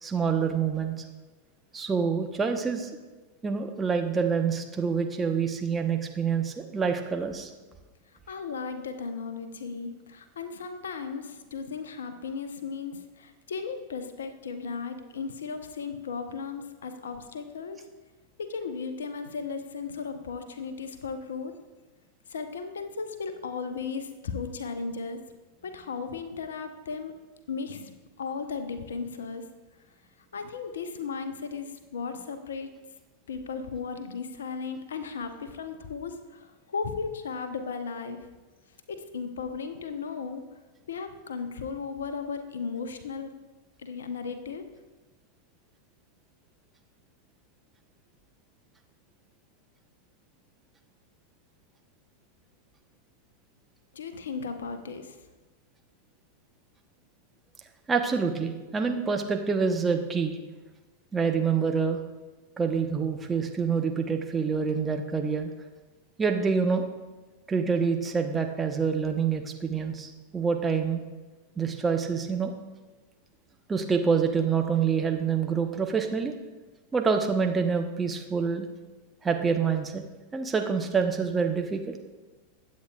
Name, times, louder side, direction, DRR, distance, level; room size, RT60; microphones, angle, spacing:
voice 1, 0.0-1.0 1.7-2.9 3.4-7.5 57.9-60.4 61.1-62.0 62.6-65.5 66.2-66.9 67.5-71.0 71.6-72.5 73.7-76.3 76.9-78.7 79.2-80.0 80.3-81.9, right 5 dB, 15° right, 4 dB, 1.0 m, -26 dB
voice 2, 8.3-17.8 18.4-21.6 22.3-25.2 25.6-27.1 27.5-29.5 30.3-32.7 33.3-38.2 38.9-40.4 40.9-43.3 43.8-44.7 53.9-55.2, left 5 dB, 65° left, 8 dB, 0.9 m, -36 dB
21.0 x 8.6 x 2.4 m, 1.2 s
figure-of-eight pair, 90°, 0 cm